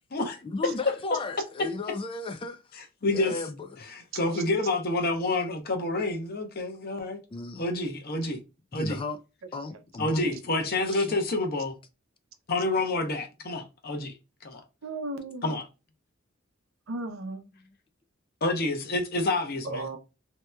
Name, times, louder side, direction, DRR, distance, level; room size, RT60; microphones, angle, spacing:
voice 1, 0.4-2.6 3.1-3.8 7.3-7.7 8.7-9.2 9.5-10.3 10.9-11.1, left 3 dB, 25° left, 0.3 m, -35 dB
voice 2, 3.0-3.4 3.9-7.2 7.6-8.4 8.7-9.0 10.0-11.7 12.5-14.1 14.4-14.6 15.4-15.6 18.4-20.0, left 2 dB, 50° left, 0.8 m, -28 dB
voice 3, 14.8-15.6 16.9-17.4 19.6-20.0, right 2 dB, 75° right, 0.6 m, -35 dB
3.3 x 2.8 x 2.2 m
head